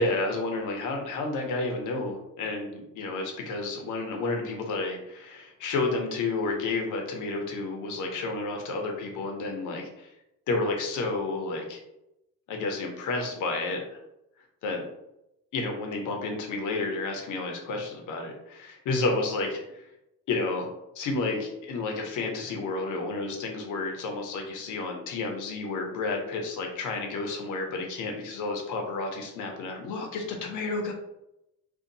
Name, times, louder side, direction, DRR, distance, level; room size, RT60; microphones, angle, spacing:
voice 1, 0.0-10.1 10.5-11.8 12.5-14.0 14.6-14.8 15.5-19.8 20.3-20.7 20.9-30.9, left 3 dB, 85° left, 2 dB, 0.9 m, -31 dB
2.7 x 2.4 x 3.9 m, 0.87 s
cardioid pair, 90°, 30 cm